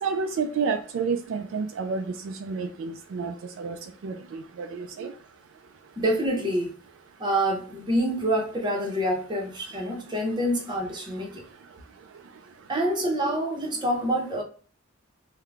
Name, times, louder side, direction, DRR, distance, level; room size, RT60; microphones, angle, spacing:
voice 1, 0.0-3.8 4.0-5.1 13.0-13.1, right 5 dB, 65° right, 0.3 m, -30 dB
voice 2, 6.0-6.7 7.2-11.4 12.7-14.4, right 1 dB, 20° right, 0.8 m, -26 dB
3.7 x 2.1 x 3.4 m
head